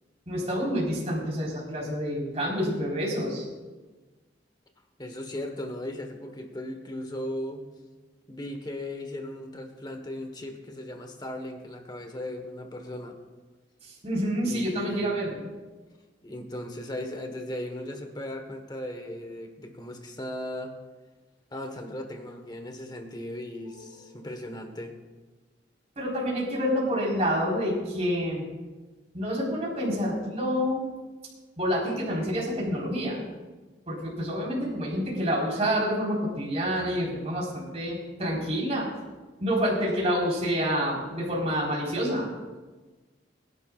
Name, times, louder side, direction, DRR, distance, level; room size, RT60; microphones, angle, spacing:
voice 1, 0.3-3.4 13.8-15.4 23.7-23.8 26.0-28.5 29.1-30.9 31.6-33.2 33.9-39.0 39.4-42.3, equal, 35° right, -5 dB, 4.2 m, -28 dB
voice 2, 5.0-7.6 8.3-13.2 14.4-15.1 16.2-20.7 21.5-24.9, left 1 dB, 25° left, 5 dB, 1.3 m, -37 dB
23.5 x 11.0 x 2.4 m, 1.3 s
head